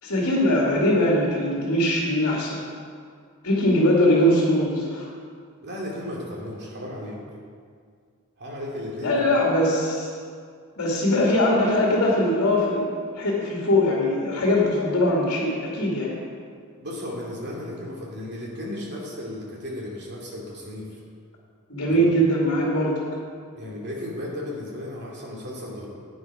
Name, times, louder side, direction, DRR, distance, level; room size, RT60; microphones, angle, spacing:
voice 1, 0.0-2.6 3.4-5.1 9.0-10.1 10.8-12.9 13.1-16.1 21.7-23.0, left 1 dB, 70° left, -4 dB, 2.3 m, -21 dB
voice 2, 5.6-7.2 8.4-9.3 16.8-20.9 21.9-22.2 23.5-25.9, left 1 dB, 50° right, -3 dB, 2.5 m, -34 dB
10.5 x 9.3 x 4.9 m, 2.1 s
head